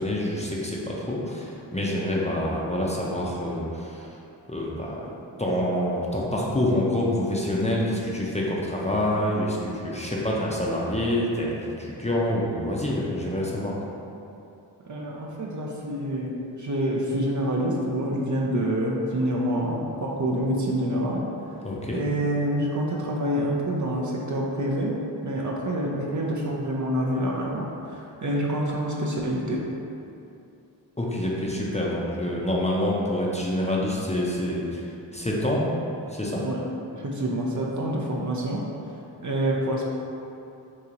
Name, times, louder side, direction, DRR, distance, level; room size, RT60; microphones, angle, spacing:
voice 1, 0.0-4.1 4.5-5.1 5.4-13.8 21.6-22.0 31.0-35.7 36.1-36.4, left 1 dB, 15° left, -5 dB, 0.6 m, -27 dB
voice 2, 14.9-16.3 16.6-21.2 21.9-24.9 25.2-29.6 36.3-36.6 36.9-38.6 39.2-39.9, right 1 dB, 45° right, -3 dB, 0.6 m, -27 dB
2.9 x 2.8 x 3.8 m, 2.7 s
cardioid pair, 40°, 44 cm